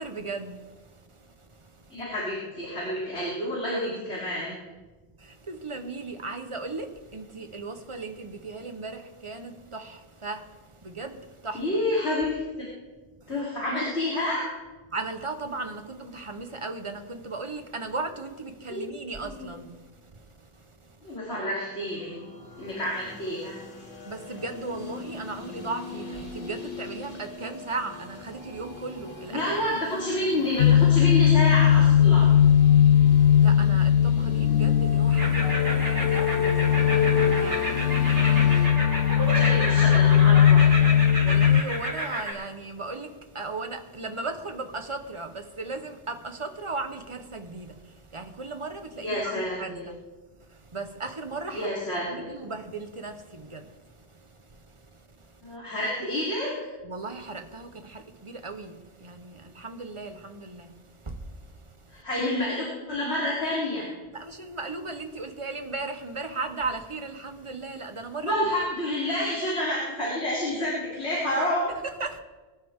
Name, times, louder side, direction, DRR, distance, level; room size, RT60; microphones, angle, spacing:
voice 1, 0.0-2.0 5.2-11.8 13.2-13.4 14.9-21.2 24.0-29.9 30.3-30.5 33.0-39.4 41.2-50.0 50.3-51.8 52.1-55.6 56.8-62.0 64.1-68.3 71.8-72.2, right 3 dB, 30° right, 1.2 m, -37 dB
voice 2, 1.9-4.6 11.5-12.4 13.3-14.4 18.7-18.8 19.2-19.5 21.0-22.2 22.6-23.6 29.3-32.3 39.3-40.8 49.0-49.9 51.5-52.3 55.4-56.5 61.9-63.8 68.2-71.7, left 1 dB, 65° left, 4.2 m, -29 dB
sound 1, 21.7-38.7, left 2 dB, 50° left, 2.9 m, -41 dB
sound 2, 30.6-41.6, left 9 dB, 90° left, 1.0 m, -19 dB
sound 3, 35.1-42.3, right 1 dB, 85° right, 3.9 m, -31 dB
23.5 x 11.5 x 3.7 m
omnidirectional pair, 1.2 m